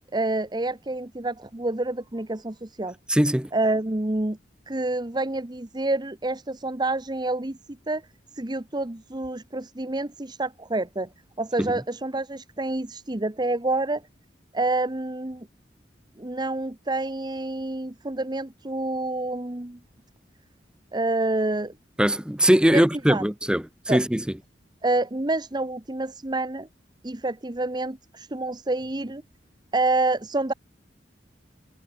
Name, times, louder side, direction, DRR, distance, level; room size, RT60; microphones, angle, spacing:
voice 1, 0.1-3.0 3.5-4.4 4.7-8.0 8.3-11.1 11.4-14.0 14.5-15.5 16.2-19.8 20.9-21.7 22.7-22.8 23.1-23.2 23.9-24.0 24.8-26.7 27.0-29.2 29.7-30.5, right 2 dB, 25° right, 1.1 m, -28 dB
voice 2, 3.1-3.5 11.6-11.7 22.0-24.2, equal, 5° right, 0.9 m, -21 dB
head